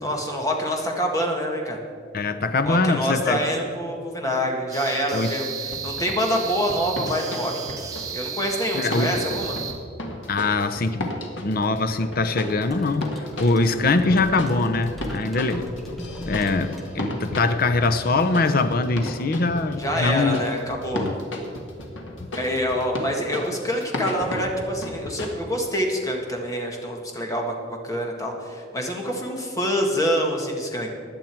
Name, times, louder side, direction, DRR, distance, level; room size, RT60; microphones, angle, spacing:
voice 1, 0.0-1.8 2.6-5.4 5.8-7.8 8.1-9.6 19.8-21.1 22.3-30.9, equal, 20° left, 1 dB, 1.7 m, -26 dB
voice 2, 2.1-3.4 5.1-5.3 8.7-9.2 10.3-15.7 16.2-20.4 20.9-21.2, left 3 dB, 50° left, 9 dB, 0.7 m, -23 dB
sound 1, 4.7-9.7, right 7 dB, 20° right, 1.5 m, -33 dB
sound 2, 5.7-8.1 8.9-25.3, left 1 dB, 80° left, 1.9 m, -34 dB
sound 3, 12.7-17.5, equal, ahead, 1.3 m, -39 dB
16.0 x 10.5 x 4.6 m, 2.2 s
head